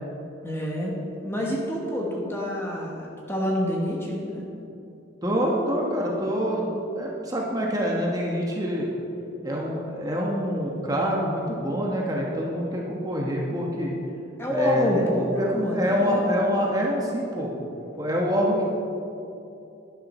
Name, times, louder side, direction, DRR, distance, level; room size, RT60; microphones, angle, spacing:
voice 1, 0.4-1.0 1.2-4.5 14.4-16.3, left 1 dB, 10° left, -2 dB, 1.3 m, -27 dB
voice 2, 5.2-6.7 6.9-8.9 9.4-13.9 14.5-15.0 15.4-17.5 18.0-18.6, equal, 20° right, -2 dB, 1.3 m, -26 dB
11.5 x 11.0 x 4.3 m, 2.8 s
head